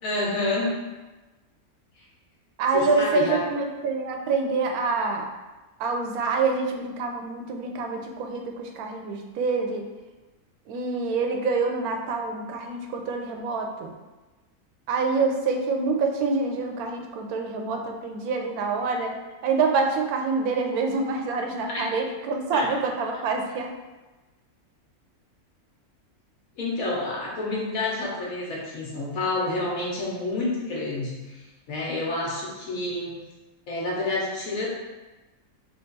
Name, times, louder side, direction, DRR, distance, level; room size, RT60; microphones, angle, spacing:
voice 1, 0.0-0.7 2.0-2.1 2.7-3.4 21.7-21.9 22.5-22.7 26.6-33.2 33.7-34.7, left 2 dB, 75° left, -4 dB, 1.4 m, -29 dB
voice 2, 2.6-5.3 5.8-9.9 10.7-13.9 14.9-19.2 19.4-23.7, right 4 dB, 85° right, 3 dB, 1.1 m, -26 dB
3.5 x 2.6 x 3.9 m, 1.2 s
omnidirectional pair, 1.5 m